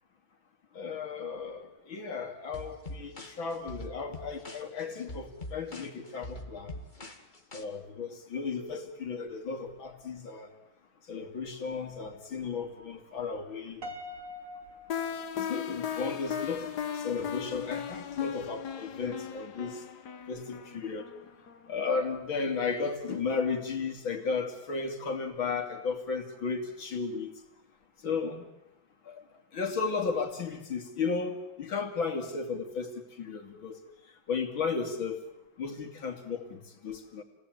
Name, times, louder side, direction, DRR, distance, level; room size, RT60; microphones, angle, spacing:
voice 1, 0.7-6.7 7.5-10.5 11.1-13.8 15.3-19.8 20.3-21.1 21.7-27.3 28.0-28.4 29.1-29.2 29.5-33.8 34.3-35.2 35.6-37.2, left 5 dB, 85° left, 4 dB, 3.5 m, -34 dB
sound 1, 2.5-7.6, left 1 dB, 25° left, 2.1 m, -44 dB
Piano, 13.8-16.1, left 1 dB, 45° right, 2.1 m, -44 dB
sound 2, 14.9-21.7, left 8 dB, 60° left, 1.8 m, -37 dB
28.0 x 19.0 x 9.3 m, 0.92 s
omnidirectional pair, 2.1 m